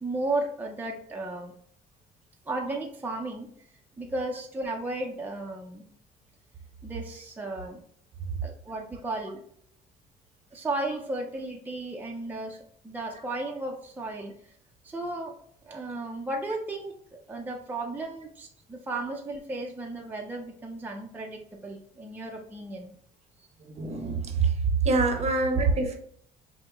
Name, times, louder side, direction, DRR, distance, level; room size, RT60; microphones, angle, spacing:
voice 1, 0.0-1.5 2.5-3.5 4.0-5.9 6.8-7.8 8.4-9.4 10.5-12.6 12.8-14.5 14.8-15.3 15.6-16.9 17.3-22.9, right 2 dB, 10° right, 0 dB, 0.5 m, -34 dB
voice 2, 23.6-24.6 24.8-26.0, right 4 dB, 40° right, 5 dB, 0.8 m, -25 dB
5.7 x 2.1 x 2.9 m, 0.63 s
cardioid pair, 110°, 17 cm